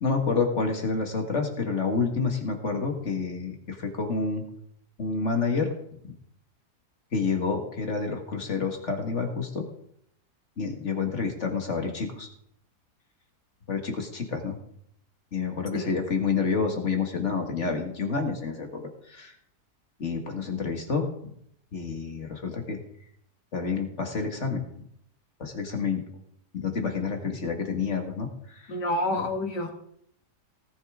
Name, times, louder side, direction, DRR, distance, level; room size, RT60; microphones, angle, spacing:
voice 1, 0.0-4.4 5.0-5.7 6.0-6.2 7.1-9.6 10.6-12.3 13.7-14.6 15.3-19.3 20.0-21.3 21.7-22.8 23.5-24.9 25.4-26.0 26.5-28.7, left 4 dB, 45° left, 3 dB, 2.0 m, -29 dB
voice 2, 28.7-29.7, left 1 dB, 90° left, 3 dB, 2.4 m, -28 dB
19.0 x 9.5 x 3.7 m, 0.70 s
omnidirectional pair, 1.8 m